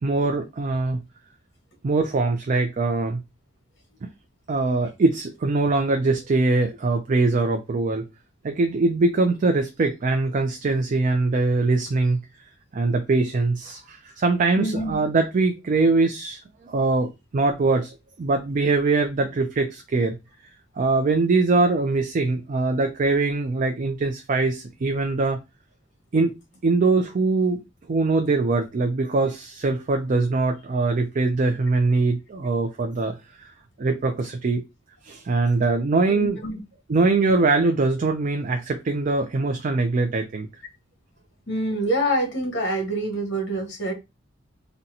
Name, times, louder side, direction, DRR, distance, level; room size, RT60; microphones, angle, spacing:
voice 1, 0.0-1.0 1.8-3.2 4.5-8.0 8.4-12.2 12.7-20.2 20.8-25.4 26.1-26.4 26.6-27.6 27.9-33.5 33.8-34.6 35.0-36.4 36.9-40.5, right 3 dB, 40° right, 0.4 m, -22 dB
voice 2, 14.6-14.9 36.1-36.6 41.5-43.9, right 1 dB, 65° left, 1.3 m, -26 dB
3.9 x 2.1 x 2.7 m
head